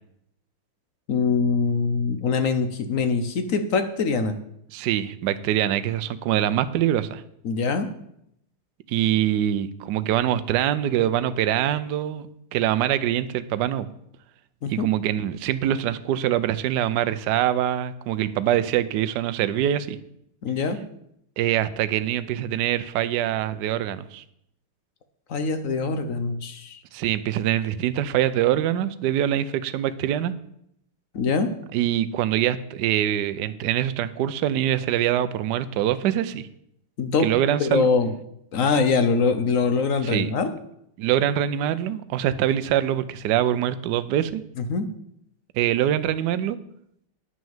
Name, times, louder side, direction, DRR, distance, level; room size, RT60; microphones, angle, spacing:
voice 1, 1.1-4.3 7.4-7.9 14.6-14.9 20.4-20.8 25.3-26.8 31.1-31.5 37.0-37.3 37.6-38.1 38.5-40.6 44.6-44.9, left 4 dB, 60° left, 9 dB, 0.8 m, -23 dB
voice 2, 4.7-7.2 8.9-12.3 12.5-13.9 14.7-20.0 21.4-24.2 26.9-30.3 31.7-36.5 37.2-37.9 40.0-40.3 41.0-44.4 45.5-46.6, right 11 dB, 75° right, 12 dB, 1.0 m, -24 dB
9.7 x 6.2 x 7.2 m, 0.74 s
omnidirectional pair, 2.4 m